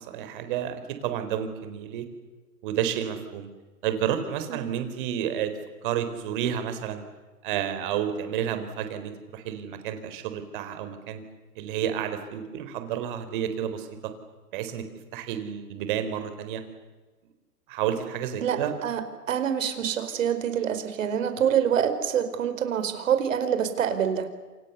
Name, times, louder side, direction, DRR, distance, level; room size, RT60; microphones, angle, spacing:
voice 1, 0.0-2.1 2.6-3.5 3.8-5.5 5.8-7.0 7.4-11.2 11.6-14.1 14.5-14.8 15.1-16.6 17.7-18.8, right 9 dB, 30° right, 9 dB, 4.0 m, -30 dB
voice 2, 18.4-19.0 19.3-24.3, right 8 dB, 50° right, 9 dB, 4.8 m, -26 dB
28.5 x 28.0 x 7.0 m, 1.3 s
hypercardioid pair, 160°, 48 cm